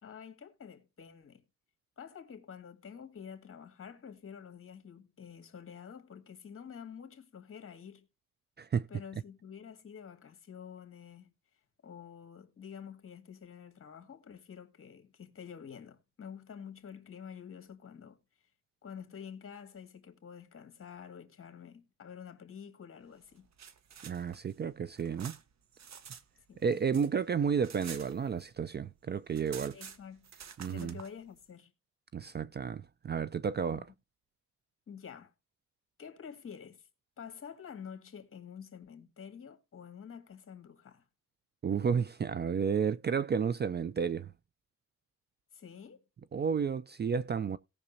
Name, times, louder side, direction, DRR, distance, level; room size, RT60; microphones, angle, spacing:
voice 1, 0.0-1.4 2.0-8.1 8.9-11.3 11.8-18.2 18.8-23.5 26.5-26.8 29.7-30.3 30.6-31.7 33.7-33.9 34.9-35.3 36.0-36.9 37.2-41.1 45.5-46.0, left 7 dB, 45° left, 2.0 m, -48 dB
sound 1, 23.3-26.2 26.5-28.7 29.0-29.1 29.3-31.1, right 7 dB, 60° right, 1.0 m, -49 dB
voice 2, 24.0-25.4 26.6-29.8 30.6-31.0 32.1-33.9 41.6-44.3 46.3-47.6, right 6 dB, 35° right, 0.4 m, -32 dB
17.5 x 6.0 x 2.7 m
cardioid pair, 105°, 31 cm